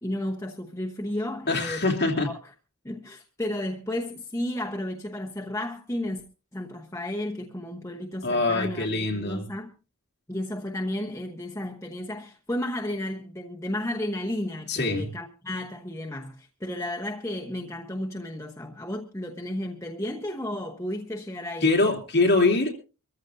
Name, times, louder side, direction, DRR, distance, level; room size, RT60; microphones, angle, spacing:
voice 1, 0.0-1.8 2.2-2.3 2.8-6.2 6.5-9.7 10.3-21.8, left 1 dB, 15° left, 1.0 m, -33 dB
voice 2, 1.5-2.3 8.2-9.4 14.7-15.1 21.6-22.7, left 2 dB, 50° left, 2.9 m, -23 dB
24.5 x 14.5 x 2.7 m
head